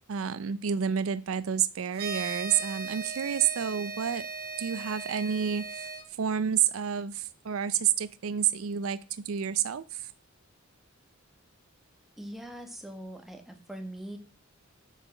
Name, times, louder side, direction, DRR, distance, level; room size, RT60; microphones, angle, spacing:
voice 1, 0.1-4.3 4.6-5.9 6.2-10.1, right 8 dB, 70° right, 16 dB, 0.5 m, -29 dB
sound 1, 1.9-6.0, right 4 dB, 45° right, 1.9 m, -38 dB
voice 2, 12.2-14.2, right 1 dB, ahead, 4 dB, 1.5 m, -42 dB
8.3 x 5.7 x 5.9 m, 0.36 s
head